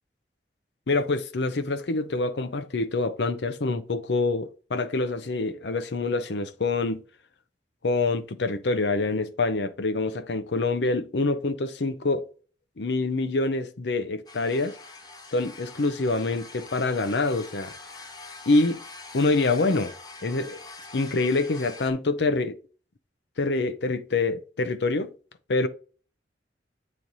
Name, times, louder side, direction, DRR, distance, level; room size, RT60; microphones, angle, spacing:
voice 1, 0.9-7.0 7.8-12.3 12.8-14.8 15.3-17.8 18.5-18.8 19.1-19.9 20.2-20.6 20.9-22.6 23.4-25.1 25.5-25.7, left 3 dB, 70° left, 0.7 m, -26 dB
sound 1, 14.3-21.9, left 3 dB, 25° left, 0.8 m, -44 dB
8.7 x 3.2 x 4.0 m
head